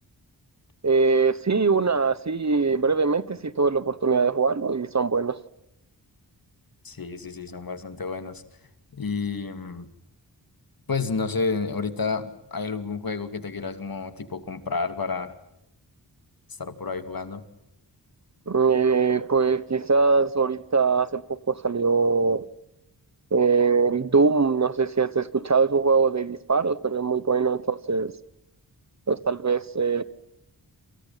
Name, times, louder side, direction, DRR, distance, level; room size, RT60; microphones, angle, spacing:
voice 1, 0.8-5.4 18.5-22.4 23.3-28.1 29.1-30.0, right 4 dB, 40° right, 1.2 m, -22 dB
voice 2, 6.8-8.4 8.9-9.9 10.9-15.3 16.6-17.4, left 4 dB, 60° left, 2.7 m, -30 dB
28.5 x 27.5 x 5.8 m
wide cardioid pair, 105°, 40 cm